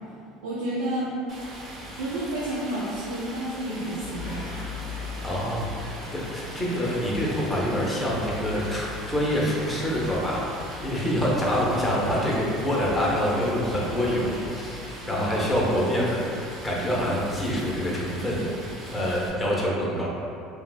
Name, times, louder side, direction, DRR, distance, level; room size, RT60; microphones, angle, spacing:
voice 1, 0.4-1.1 2.0-4.6 15.1-15.3, right 1 dB, 80° right, -8 dB, 0.4 m, -30 dB
Stream, 1.3-19.3, right 1 dB, 40° right, 0.6 m, -41 dB
sound 1, 4.0-15.5, left 4 dB, 75° left, 0.5 m, -40 dB
voice 2, 5.2-18.4 18.9-20.1, equal, 15° left, -5 dB, 0.6 m, -26 dB
2.7 x 2.0 x 2.3 m, 2.5 s
hypercardioid pair, 75°, 0 cm